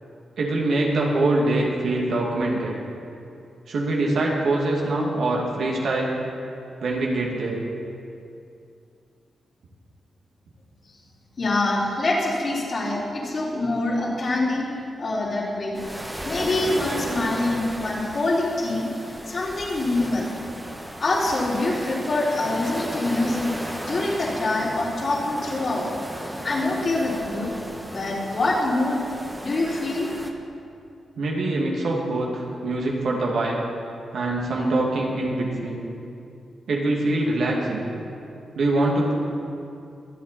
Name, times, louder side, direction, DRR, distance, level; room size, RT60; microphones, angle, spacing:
voice 1, 0.4-2.8 3.7-6.1 6.8-7.6 31.2-33.6 34.1-35.8 36.7-37.9 38.5-39.1, right 2 dB, 75° right, -2 dB, 2.5 m, -24 dB
voice 2, 11.4-14.7 15.0-15.8 16.2-20.3 21.0-23.5 23.8-25.9 26.2-27.5 27.9-29.0 29.4-30.1, left 2 dB, 55° left, -5 dB, 3.8 m, -25 dB
sound 1, 15.7-30.3, equal, 10° right, 1.6 m, -35 dB
24.0 x 8.2 x 4.3 m, 2.5 s
cardioid pair, 55°, 0 cm